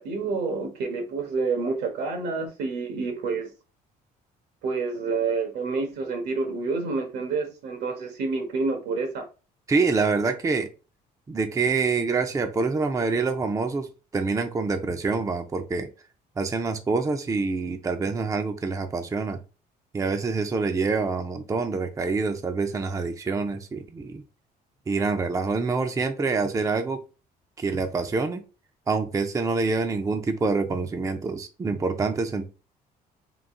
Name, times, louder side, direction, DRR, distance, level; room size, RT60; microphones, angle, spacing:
voice 1, 0.0-3.5 4.6-9.2, right 4 dB, 80° right, 1.4 m, -28 dB
voice 2, 9.7-10.7 11.3-15.9 16.4-19.4 19.9-24.2 24.9-27.0 27.6-28.4 28.9-32.5, right 4 dB, 20° right, 0.5 m, -26 dB
3.8 x 2.5 x 3.6 m
cardioid pair, 110°, 17 cm